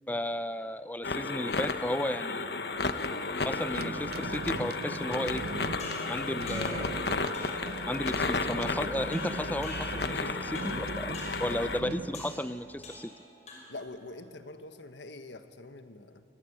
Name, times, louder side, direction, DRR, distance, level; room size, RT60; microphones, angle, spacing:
voice 1, 0.1-2.8 3.4-5.4 6.1-7.1 7.9-13.1, left 1 dB, 10° left, 13 dB, 0.6 m, -34 dB
sound 1, 1.0-11.8, left 3 dB, 65° left, 1.3 m, -33 dB
sound 2, 3.5-13.0, right 2 dB, 60° right, 0.6 m, -39 dB
sound 3, 5.8-6.9 7.3-7.7 8.1-8.4 9.1-10.2 10.6-10.9 11.1-11.5 12.1-12.4 12.8-13.2 13.5-13.9, left 2 dB, 40° left, 6.0 m, -46 dB
voice 2, 11.5-11.9 13.7-16.2, left 2 dB, 90° left, 9 dB, 1.5 m, -45 dB
28.0 x 23.0 x 8.9 m, 2.9 s
head